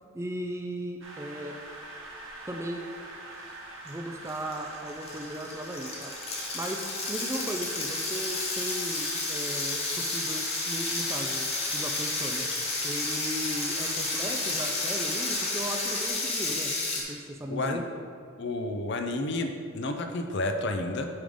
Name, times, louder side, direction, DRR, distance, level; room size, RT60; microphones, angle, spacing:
voice 1, 0.1-1.5 2.5-2.8 3.8-6.1 6.5-11.5 11.7-12.5 12.8-16.7 17.1-17.8, equal, 15° right, 3 dB, 0.4 m, -36 dB
sound 1, 1.0-16.1, right 2 dB, 65° right, 1.2 m, -44 dB
sound 2, 3.9-4.0 4.3-17.0, left 2 dB, 30° left, 1.0 m, -31 dB
voice 2, 17.5-17.8 18.4-21.1, left 2 dB, 55° left, 5 dB, 0.6 m, -30 dB
8.8 x 3.6 x 5.1 m, 2.2 s
head